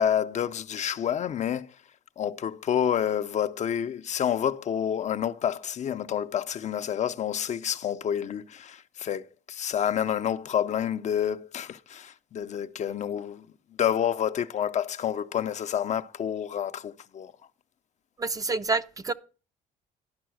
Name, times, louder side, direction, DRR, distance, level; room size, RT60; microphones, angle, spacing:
voice 1, 0.0-1.7 2.2-13.4 13.8-17.3, left 9 dB, 45° left, 0.5 m, -28 dB
voice 2, 18.2-19.1, right 3 dB, 20° right, 0.5 m, -28 dB
11.0 x 5.5 x 6.2 m
cardioid pair, 110°, 17 cm